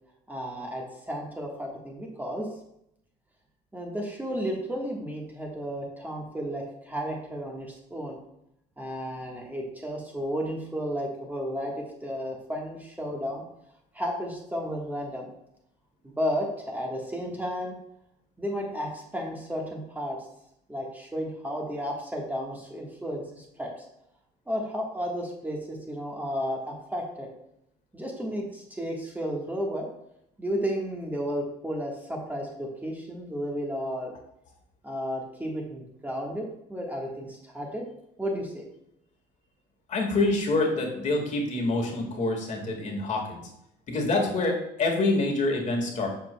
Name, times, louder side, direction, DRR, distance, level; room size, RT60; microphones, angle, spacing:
voice 1, 0.3-2.5 3.7-8.2 8.8-13.4 13.9-15.3 16.0-17.8 18.4-20.2 20.7-23.7 24.5-27.3 27.9-29.9 30.4-34.1 34.8-37.9 38.2-38.6, equal, 10° right, -1 dB, 1.4 m, -33 dB
voice 2, 39.9-43.4 43.9-46.1, left 2 dB, 45° left, 1 dB, 1.8 m, -26 dB
7.4 x 6.6 x 2.2 m, 0.77 s
cardioid pair, 110°, 17 cm